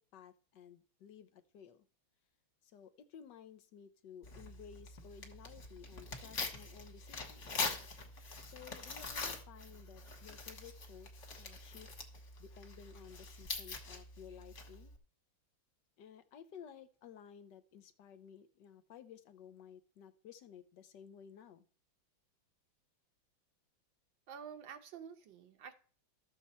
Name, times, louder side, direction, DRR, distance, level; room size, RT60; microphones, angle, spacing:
voice 1, 0.0-1.9 2.6-7.6 8.4-11.9 12.4-14.9 16.0-21.7, left 8 dB, 70° left, 11 dB, 1.3 m, -55 dB
Tearing, 4.2-15.0, left 3 dB, 40° left, 1.5 m, -44 dB
voice 2, 24.3-25.7, right 7 dB, 75° right, 7 dB, 1.7 m, -49 dB
13.0 x 7.0 x 4.3 m, 0.42 s
omnidirectional pair, 2.1 m